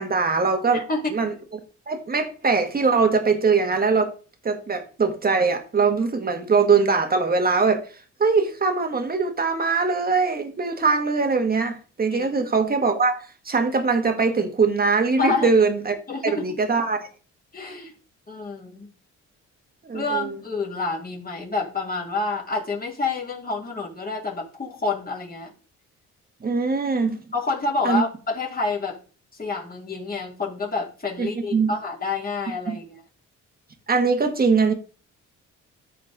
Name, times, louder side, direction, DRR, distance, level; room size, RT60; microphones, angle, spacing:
voice 1, 0.0-0.8 1.1-1.3 1.9-4.1 4.4-7.9 8.2-13.2 13.5-16.0 16.2-17.0 19.8-20.4 26.4-27.2 27.8-28.0 31.2-31.7 32.7-32.8 33.9-34.7, right 4 dB, 30° right, 1.9 m, -21 dB
voice 2, 15.2-15.5 16.1-16.5 17.5-17.9 18.3-18.9 19.9-25.5 27.3-29.0 29.4-33.0, left 3 dB, 30° left, 3.4 m, -28 dB
14.0 x 4.7 x 3.7 m
cardioid pair, 90°, 30 cm